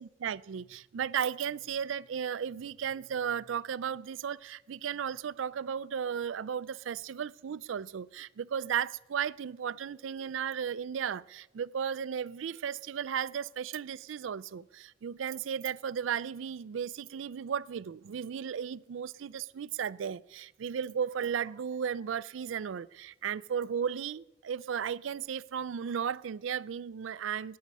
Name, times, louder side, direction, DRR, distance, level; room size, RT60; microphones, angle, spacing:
voice 1, 0.0-27.6, right 7 dB, 85° right, 0.4 m, -35 dB
19.5 x 9.4 x 5.4 m
head